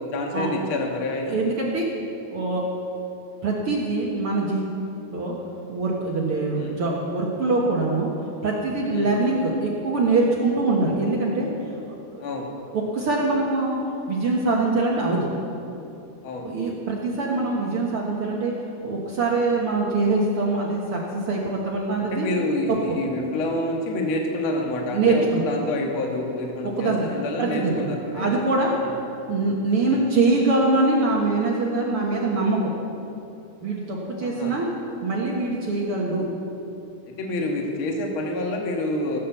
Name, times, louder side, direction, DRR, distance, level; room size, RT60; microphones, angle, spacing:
voice 1, 0.1-1.4 6.5-6.8 8.9-9.1 12.2-12.5 16.2-16.5 22.0-28.3 28.8-28.9 29.9-30.0 34.2-34.6 37.1-39.2, left 2 dB, 55° left, 1 dB, 1.4 m, -28 dB
voice 2, 1.3-1.9 2.3-2.6 3.4-4.7 5.1-5.3 5.7-8.1 8.4-11.5 12.1-12.2 12.7-13.8 14.1-15.3 16.4-18.5 18.8-22.3 22.7-23.0 24.9-25.4 26.6-27.1 27.4-27.8 28.1-28.7 29.3-32.7 33.6-34.7 35.0-36.3, right 3 dB, 75° right, -3 dB, 1.3 m, -23 dB
17.0 x 8.7 x 6.9 m, 2.7 s
omnidirectional pair, 4.7 m